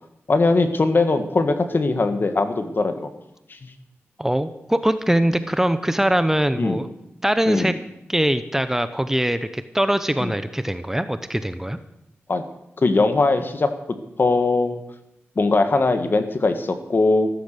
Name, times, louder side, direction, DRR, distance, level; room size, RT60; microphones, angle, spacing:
voice 1, 0.3-3.1 3.5-3.6 6.6-6.8 7.5-7.8 10.2-10.3 12.3-12.4 12.8-13.7 14.2-14.8 15.4-17.3, left 3 dB, 50° left, 8 dB, 1.8 m, -20 dB
voice 2, 4.2-6.9 7.2-7.8 8.1-11.8, right 1 dB, 10° right, 11 dB, 0.8 m, -22 dB
14.5 x 13.5 x 6.8 m, 0.85 s
wide cardioid pair, 95°, 5 cm